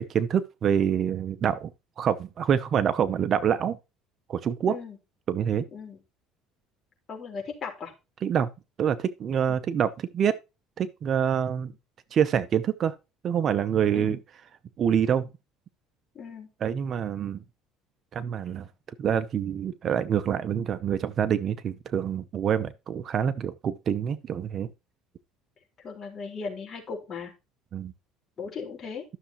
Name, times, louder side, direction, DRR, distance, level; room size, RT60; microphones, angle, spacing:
voice 1, 0.0-1.7 2.0-3.8 4.3-4.8 5.3-5.6 8.2-8.5 8.8-10.4 10.8-11.7 12.1-12.9 13.2-14.2 14.8-15.3 16.6-17.4 18.1-18.7 19.0-24.7 27.7-27.9, right 8 dB, 40° right, 0.7 m, -26 dB
voice 2, 4.7-5.0 5.7-6.0 7.1-7.9 9.5-9.6 13.9-14.2 16.1-16.5 25.8-27.3 28.4-29.0, left 5 dB, 35° left, 4.1 m, -37 dB
13.0 x 6.7 x 3.0 m
cardioid pair, 130°, 0 cm